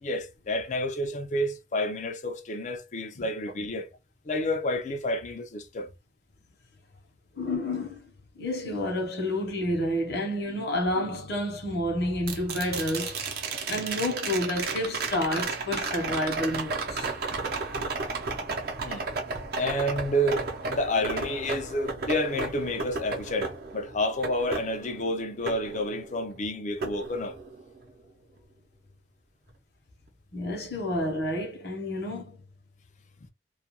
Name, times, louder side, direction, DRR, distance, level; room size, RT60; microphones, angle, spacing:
voice 1, 0.0-3.9 4.3-5.9 18.8-19.0 19.6-27.3, left 1 dB, 40° left, 0.5 m, -29 dB
voice 2, 7.3-13.3 13.7-17.1 30.3-32.4, left 1 dB, 60° left, 0.9 m, -30 dB
sound 1, 12.3-26.4 26.8-27.8 30.1-30.2, right 4 dB, 55° right, 0.7 m, -33 dB
2.4 x 2.2 x 2.9 m
head